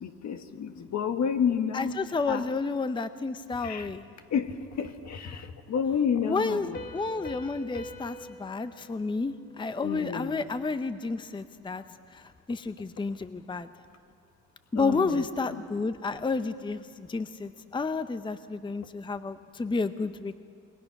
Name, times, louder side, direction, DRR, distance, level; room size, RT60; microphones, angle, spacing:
voice 1, 0.0-2.0 2.3-2.5 3.6-3.9 4.3-4.5 4.8-5.4 5.7-6.8 9.8-10.4 14.7-15.2 15.5-15.6, left 7 dB, 65° left, 7 dB, 1.6 m, -30 dB
voice 2, 1.7-4.0 6.2-11.8 12.1-12.2 12.5-13.7 14.7-20.4, left 4 dB, 15° left, 11 dB, 0.7 m, -31 dB
Piano, 6.7-10.2, equal, 35° left, 4.2 m, -44 dB
28.0 x 22.0 x 6.0 m, 2.3 s
cardioid pair, 90°, 30 cm